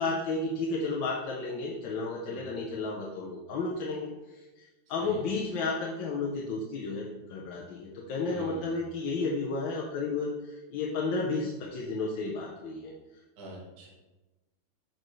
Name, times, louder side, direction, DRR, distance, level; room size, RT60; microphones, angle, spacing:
voice 1, 0.0-12.9, left 3 dB, 70° left, -2 dB, 1.4 m, -32 dB
voice 2, 8.2-8.8 13.4-13.9, right 1 dB, 50° right, -3 dB, 1.7 m, -44 dB
6.4 x 6.4 x 3.1 m, 1.1 s
omnidirectional pair, 2.4 m